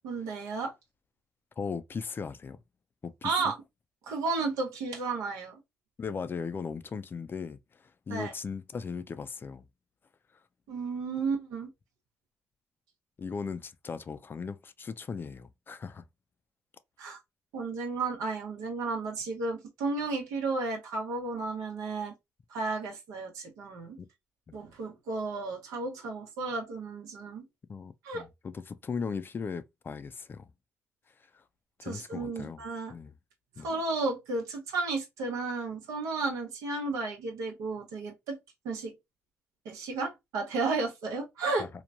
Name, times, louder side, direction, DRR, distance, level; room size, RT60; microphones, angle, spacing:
voice 1, 0.0-0.7 3.2-3.5 4.1-5.6 8.1-8.3 10.7-11.7 17.0-17.2 17.5-22.1 22.5-24.0 24.5-27.4 28.0-28.2 31.8-32.9 33.6-38.4 38.6-38.9 39.6-41.7, right 3 dB, 85° right, 0.8 m, -33 dB
voice 2, 1.6-2.6 3.0-3.3 6.0-9.7 13.2-16.1 24.0-24.1 24.5-24.6 27.7-30.5 31.3-31.4 31.8-33.1 33.6-33.7 41.6-41.7, left 5 dB, 40° left, 0.4 m, -38 dB
3.1 x 2.1 x 2.4 m
supercardioid pair, 60°, 6 cm